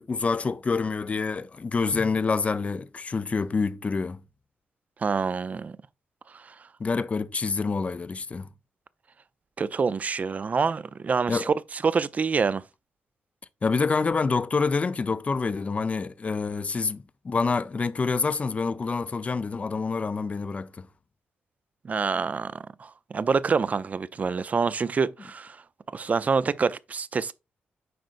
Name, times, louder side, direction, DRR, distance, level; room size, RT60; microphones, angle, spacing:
voice 1, 0.0-4.2 6.8-8.5 11.3-11.5 13.6-20.9, left 4 dB, 35° left, 0.5 m, -27 dB
voice 2, 5.0-5.7 9.6-11.5 11.8-12.6 21.8-22.5 22.8-25.6 25.9-27.3, right 5 dB, 40° right, 0.4 m, -26 dB
7.7 x 5.1 x 2.5 m
cardioid pair, 90°, 4 cm